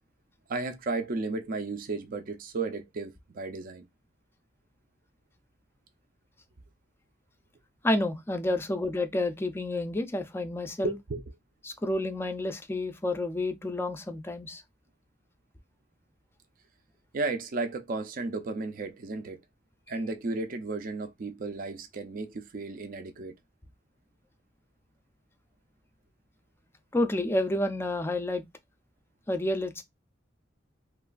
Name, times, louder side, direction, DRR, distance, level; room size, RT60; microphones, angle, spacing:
voice 1, 0.5-3.9 10.8-11.2 17.1-19.4 19.9-23.3, right 3 dB, 50° right, 0.4 m, -34 dB
voice 2, 7.8-10.9 11.6-14.6 26.9-28.4 29.3-29.8, left 1 dB, 15° left, 0.4 m, -29 dB
3.0 x 2.3 x 2.3 m
head